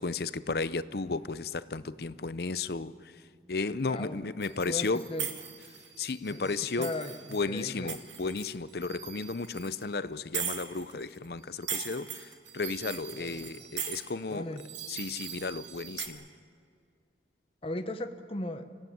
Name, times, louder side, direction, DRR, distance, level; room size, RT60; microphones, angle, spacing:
voice 1, 0.0-2.9 3.5-5.0 6.0-6.9 7.3-14.5 14.9-16.2, left 4 dB, 55° left, 16 dB, 0.7 m, -34 dB
voice 2, 3.9-4.2 4.6-5.3 6.3-7.9 13.1-13.7 14.3-14.6 17.6-18.7, left 1 dB, 30° left, 7 dB, 1.0 m, -38 dB
sound 1, 4.4-9.8 10.3-11.3 11.6-16.1, right 8 dB, 80° right, 2.4 m, -40 dB
26.0 x 16.5 x 9.4 m, 2.3 s
head